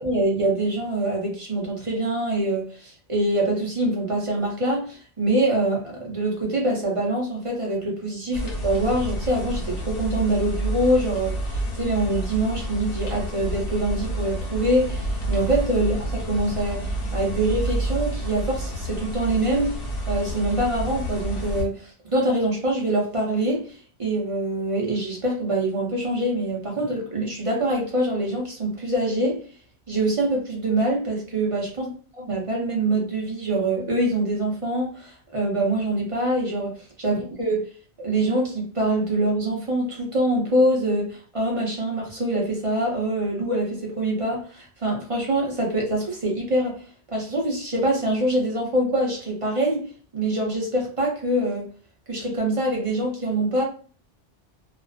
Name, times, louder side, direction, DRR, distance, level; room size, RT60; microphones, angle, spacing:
voice 1, 0.0-19.8 20.1-29.4 29.9-31.9 32.2-36.7 37.0-37.7 38.0-46.8 47.1-49.9 50.1-51.6 52.1-53.6, right 1 dB, 35° right, -1 dB, 0.7 m, -24 dB
sound 1, 8.3-21.6, right 1 dB, 85° left, 1.1 m, -29 dB
2.4 x 2.3 x 2.3 m, 0.39 s
omnidirectional pair, 1.2 m